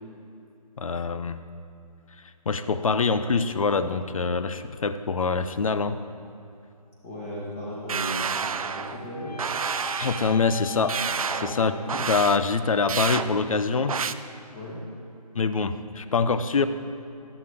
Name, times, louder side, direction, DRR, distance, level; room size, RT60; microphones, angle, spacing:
voice 1, 0.8-1.4 2.5-6.0 10.0-11.0 11.4-11.7 12.0-14.0 15.3-16.6, left 4 dB, 55° left, 11 dB, 0.6 m, -24 dB
voice 2, 7.0-9.4 11.3-11.7 14.5-14.8, equal, 20° left, -6 dB, 1.7 m, -36 dB
sound 1, 7.9-9.0 9.4-10.3 10.9-11.5 11.9-12.4 12.9-13.3 13.9-14.1, right 6 dB, 60° right, 0.5 m, -29 dB
sound 2, 8.1-12.4, left 5 dB, 85° left, 1.7 m, -42 dB
12.5 x 11.5 x 3.5 m, 2.6 s
hypercardioid pair, 170°, 20 cm